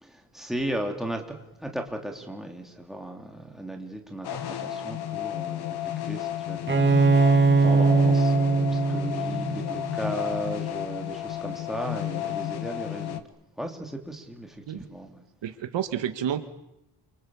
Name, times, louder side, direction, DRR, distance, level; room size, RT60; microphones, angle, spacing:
voice 1, 0.0-5.8 6.0-13.2 13.6-15.2, right 1 dB, ahead, 2 dB, 3.1 m, -36 dB
sound 1, 4.2-13.2, left 11 dB, 65° left, 1.6 m, -32 dB
Bowed string instrument, 6.7-10.3, right 4 dB, 25° right, 1.0 m, -21 dB
voice 2, 15.4-16.4, right 10 dB, 85° right, 8 dB, 2.0 m, -29 dB
29.0 x 24.5 x 7.2 m, 0.84 s
wide cardioid pair, 180°, 43 cm